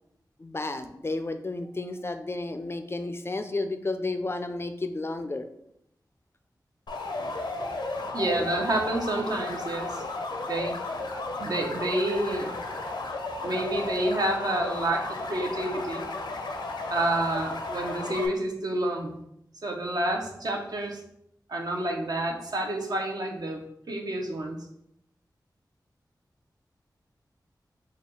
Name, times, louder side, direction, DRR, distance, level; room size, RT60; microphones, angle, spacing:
voice 1, 0.4-5.4, left 2 dB, 35° left, 8 dB, 0.3 m, -32 dB
sound 1, 6.9-18.3, left 2 dB, 80° left, 0.5 m, -34 dB
voice 2, 8.1-10.0 10.5-10.7 11.4-12.5 13.4-16.1 16.9-19.2 19.6-21.0 21.5-23.6 23.9-24.6, right 1 dB, 60° right, 2 dB, 0.7 m, -29 dB
4.2 x 2.3 x 3.7 m, 0.78 s
wide cardioid pair, 60°, 7 cm